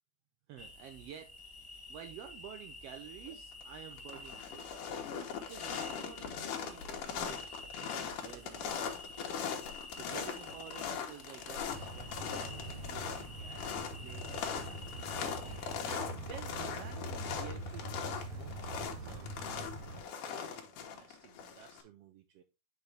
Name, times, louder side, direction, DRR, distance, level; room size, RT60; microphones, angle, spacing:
voice 1, 0.5-1.3 1.9-4.9 5.5-9.4 9.9-13.6 14.0-14.9 15.9-19.7 20.1-22.4, right 9 dB, 90° right, 7 dB, 1.4 m, -51 dB
sound 1, 0.6-15.8, left 2 dB, 10° left, 1.6 m, -51 dB
sound 2, 3.3-3.6 3.9-21.8, left 7 dB, 90° left, 2.7 m, -40 dB
sound 3, 11.6-20.0, right 2 dB, 50° right, 2.2 m, -44 dB
8.7 x 4.8 x 3.3 m, 0.26 s
omnidirectional pair, 3.5 m